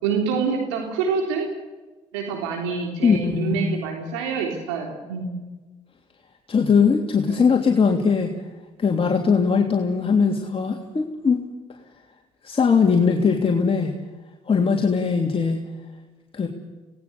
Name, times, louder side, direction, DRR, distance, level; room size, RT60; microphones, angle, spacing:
voice 1, 0.0-1.5 2.1-5.3 7.3-7.4, right 5 dB, 90° right, 1 dB, 3.5 m, -26 dB
voice 2, 3.0-3.8 6.5-8.3 8.8-11.4 12.4-13.9 14.5-15.6 16.3-16.5, left 5 dB, 40° left, 1 dB, 3.2 m, -20 dB
25.5 x 19.0 x 7.0 m, 1.2 s
hypercardioid pair, 55°, 15 cm